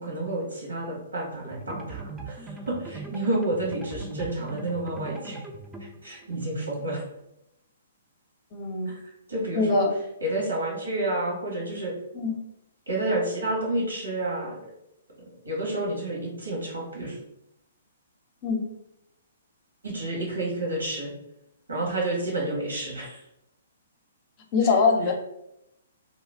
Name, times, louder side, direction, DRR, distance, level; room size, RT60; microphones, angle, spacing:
voice 1, 0.0-5.4 6.0-7.0 9.3-9.8 10.2-11.9 12.9-14.6 15.4-17.2 19.8-21.1 21.7-23.2, right 2 dB, 85° right, -2 dB, 1.5 m, -29 dB
sound 1, 1.4-7.3, right 3 dB, 15° right, 0.4 m, -41 dB
voice 2, 8.5-8.9 9.5-9.9 12.1-12.3 18.4-18.6 24.5-25.1, left 4 dB, 35° left, 3 dB, 0.6 m, -23 dB
3.0 x 2.3 x 3.4 m, 0.82 s
figure-of-eight pair, 125°, 0 cm